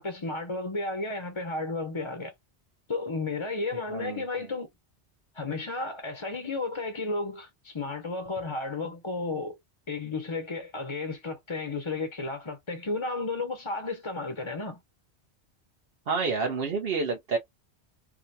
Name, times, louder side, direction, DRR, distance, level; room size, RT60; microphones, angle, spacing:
voice 1, 0.0-2.3 2.9-4.7 5.3-9.6 9.9-14.8, left 3 dB, 30° left, 0.7 m, -33 dB
voice 2, 3.9-4.2 16.1-17.4, right 4 dB, 60° right, 1.0 m, -28 dB
4.8 x 2.2 x 2.6 m
omnidirectional pair, 1.1 m